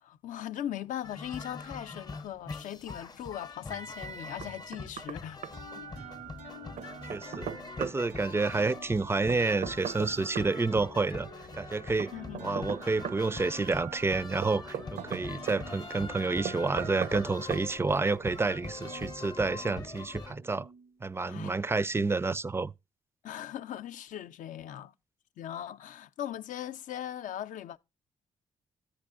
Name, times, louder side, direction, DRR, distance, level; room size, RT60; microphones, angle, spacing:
voice 1, 0.0-5.4 12.1-12.8 21.3-21.6 23.2-24.9 25.4-27.8, left 11 dB, 70° left, 0.5 m, -39 dB
sound 1, 1.0-20.3, left 3 dB, 30° left, 0.6 m, -44 dB
Knock, 4.4-5.2 5.4-5.5 6.8-8.0 9.3-10.5 12.0-13.2 14.4-15.6 16.5-17.3 17.5-17.7, right 8 dB, 65° right, 0.6 m, -37 dB
sound 2, 5.5-21.1, right 3 dB, 85° right, 0.9 m, -48 dB
voice 2, 7.1-7.5 7.8-11.3 11.5-12.1 12.4-20.7 21.0-22.7, right 3 dB, 20° right, 0.4 m, -29 dB
9.8 x 9.7 x 2.4 m
supercardioid pair, 55°, 14 cm